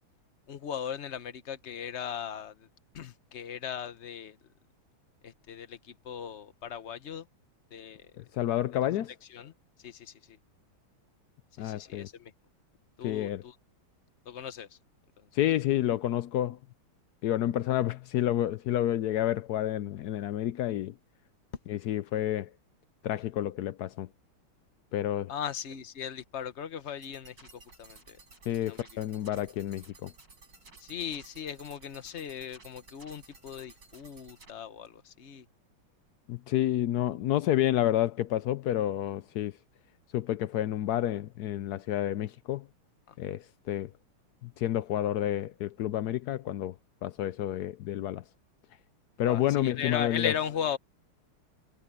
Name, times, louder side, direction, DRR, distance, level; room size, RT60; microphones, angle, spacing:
voice 1, 0.5-2.7 2.9-4.4 5.2-7.2 7.7-8.1 9.3-9.5 9.8-10.4 11.6-12.3 13.0-13.5 14.3-14.7 25.3-27.5 27.8-28.2 28.6-29.0 30.8-35.4 43.1-43.2 49.2-50.8, left 8 dB, 45° left, 1.0 m, -37 dB
voice 2, 8.2-9.1 11.6-12.1 13.0-13.4 15.3-16.6 17.2-20.9 21.7-22.5 23.0-24.1 24.9-25.3 28.5-30.1 36.3-39.5 40.1-42.6 43.2-43.9 44.6-46.7 47.0-48.2 49.2-50.3, left 12 dB, 85° left, 0.8 m, -29 dB
sound 1, 27.0-34.5, right 3 dB, 55° right, 5.9 m, -55 dB
omnidirectional pair, 2.4 m